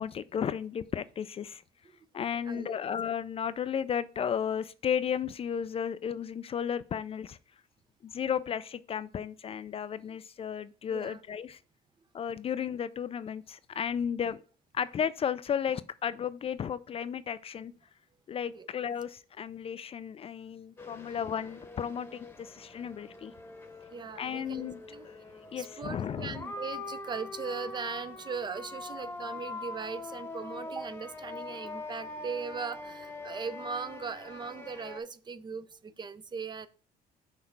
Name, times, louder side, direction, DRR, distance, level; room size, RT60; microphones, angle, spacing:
voice 1, 0.0-1.6 2.1-7.4 8.0-11.6 12.1-14.4 14.7-17.7 18.3-23.3 24.2-25.1 25.5-26.4, left 8 dB, 35° left, 0.3 m, -34 dB
voice 2, 2.4-2.9 10.1-10.2 10.9-11.2 18.5-18.7 21.1-21.2 23.9-25.1 25.6-36.7, right 5 dB, 25° right, 0.5 m, -39 dB
sound 1, 20.8-35.0, left 3 dB, 15° left, 1.0 m, -43 dB
5.8 x 3.2 x 5.7 m
cardioid pair, 110°, 17 cm